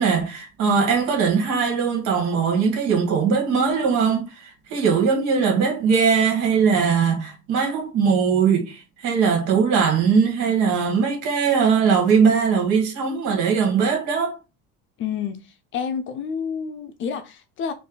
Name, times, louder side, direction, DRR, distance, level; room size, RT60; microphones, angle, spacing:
voice 1, 0.0-14.4, right 6 dB, 65° right, 2.0 m, -20 dB
voice 2, 15.0-17.7, left 7 dB, 40° left, 0.6 m, -29 dB
4.4 x 2.7 x 3.9 m
cardioid pair, 170°, 32 cm